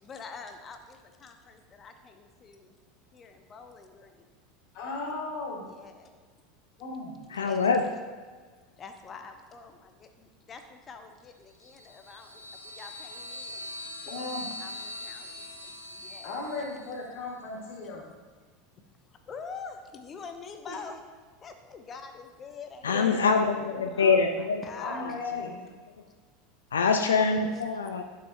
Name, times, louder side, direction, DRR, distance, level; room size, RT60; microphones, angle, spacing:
voice 1, 0.0-2.7 3.1-4.2 5.7-6.1 7.3-7.8 8.8-13.7 14.6-16.4 19.3-21.0 21.4-23.0 23.9-25.2 27.4-27.7, left 5 dB, 30° left, 6 dB, 0.7 m, -45 dB
voice 2, 4.7-5.7 6.8-7.2 14.1-14.5 16.2-18.1 20.7-20.8 22.9-23.8 24.8-25.7, left 3 dB, 50° left, -3 dB, 2.1 m, -36 dB
voice 3, 7.3-7.8 22.8-24.6 25.0-25.1 26.7-28.0, left 5 dB, 75° left, 5 dB, 0.4 m, -24 dB
sound 1, 11.6-17.0, left 1 dB, 85° right, 1.1 m, -42 dB
10.5 x 5.8 x 2.6 m, 1.5 s
figure-of-eight pair, 80°, 0 cm